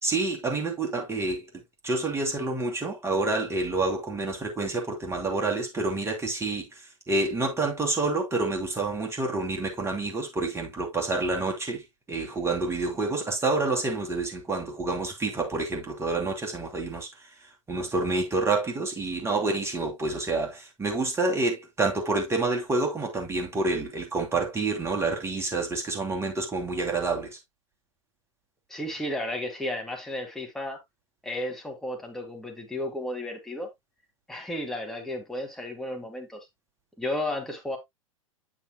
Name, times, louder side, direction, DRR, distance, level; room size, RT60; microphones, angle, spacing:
voice 1, 0.0-1.5 1.8-6.7 7.1-11.8 12.1-17.1 17.7-27.4, right 3 dB, 15° right, 2.8 m, -28 dB
voice 2, 28.7-30.8 31.2-33.7 34.3-36.4 37.0-37.8, left 1 dB, ahead, 2.1 m, -33 dB
8.4 x 7.3 x 2.2 m
hypercardioid pair, 100°, 17 cm